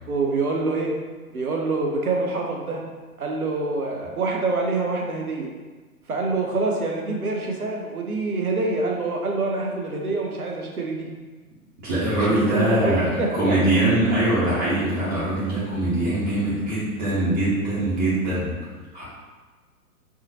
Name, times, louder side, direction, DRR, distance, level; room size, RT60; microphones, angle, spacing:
voice 1, 0.1-0.9 1.3-2.8 3.2-5.5 6.1-11.1 12.1-13.6, right 3 dB, 75° right, 0 dB, 0.9 m, -26 dB
voice 2, 11.8-18.5 18.9-19.0, right 1 dB, 30° right, -12 dB, 1.4 m, -22 dB
4.7 x 2.9 x 2.8 m, 1.4 s
figure-of-eight pair, 115°, 44 cm